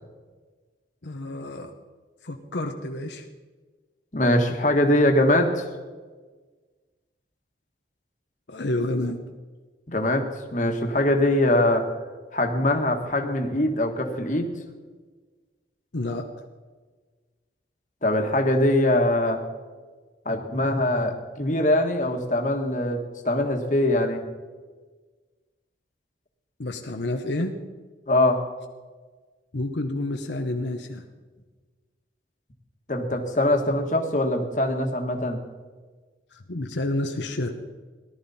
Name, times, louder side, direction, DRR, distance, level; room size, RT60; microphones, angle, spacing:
voice 1, 1.0-1.7 2.2-3.3 8.5-9.2 15.9-16.3 26.6-27.6 29.5-31.0 36.3-37.5, left 2 dB, 85° left, 4 dB, 1.0 m, -29 dB
voice 2, 4.1-5.6 9.9-10.2 10.5-11.8 12.3-14.5 18.0-19.4 20.2-24.2 28.1-28.4 32.9-35.4, left 1 dB, 45° left, 3 dB, 1.6 m, -22 dB
18.5 x 12.0 x 4.3 m, 1.4 s
head